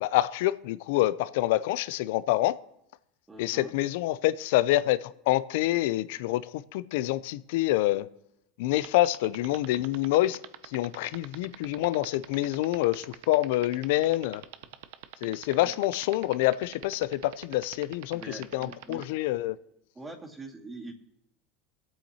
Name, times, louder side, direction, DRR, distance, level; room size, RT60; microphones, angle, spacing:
voice 1, 0.0-2.6 3.4-8.1 8.6-10.4 10.6-14.4 15.2-19.6, left 16 dB, 75° left, 0.5 m, -27 dB
voice 2, 3.3-3.8 15.6-15.7 18.1-19.0 19.9-20.9, right 2 dB, 15° right, 2.2 m, -43 dB
sound 1, 8.7-19.0, right 18 dB, 75° right, 0.6 m, -42 dB
22.5 x 8.4 x 2.9 m
supercardioid pair, 100°, 0 cm